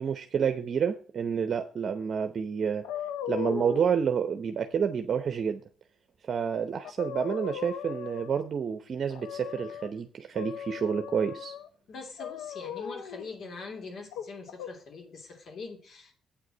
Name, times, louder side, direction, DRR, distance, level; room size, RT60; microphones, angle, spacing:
voice 1, 0.0-2.8 3.3-5.6 6.3-11.5, right 7 dB, 50° right, 8 dB, 0.8 m, -29 dB
sound 1, 2.8-4.0 6.4-6.5 6.8-8.5 9.1-9.9 10.3-11.7 12.2-13.2 14.1-14.7, left 9 dB, 90° left, 0.8 m, -38 dB
voice 2, 11.9-16.2, left 4 dB, 65° left, 3 dB, 2.9 m, -43 dB
8.9 x 4.8 x 7.7 m, 0.42 s
cardioid pair, 90°, 0 cm